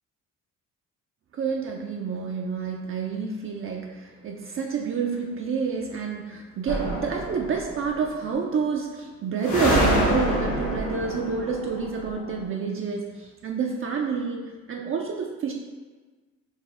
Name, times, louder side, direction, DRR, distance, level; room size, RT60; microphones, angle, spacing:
voice 1, 1.3-15.5, right 5 dB, 45° right, 0 dB, 0.5 m, -29 dB
sound 1, 6.7-7.8 9.4-12.3, equal, 70° left, 1.4 m, -26 dB
4.0 x 2.6 x 3.6 m, 1.4 s
cardioid pair, 90°, 30 cm